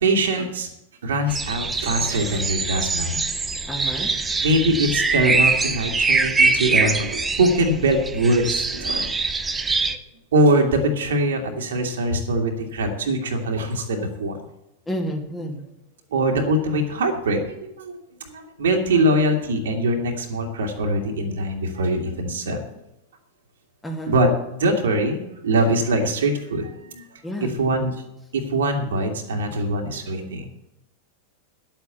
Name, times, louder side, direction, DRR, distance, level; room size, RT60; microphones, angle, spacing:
voice 1, 0.0-0.7 1.0-3.2 4.4-9.1 9.8-9.9 10.3-14.4 16.1-17.9 18.3-22.6 24.1-27.0 27.4-27.9 28.3-30.5, right 1 dB, 65° right, 3 dB, 2.3 m, -22 dB
sound 1, 1.3-10.0, right 4 dB, 15° right, 0.9 m, -23 dB
voice 2, 3.7-4.1 14.9-15.6 23.8-24.1 27.2-27.5, equal, 10° left, 1 dB, 2.3 m, -30 dB
11.0 x 8.2 x 8.3 m, 0.85 s
figure-of-eight pair, 90°, 0 cm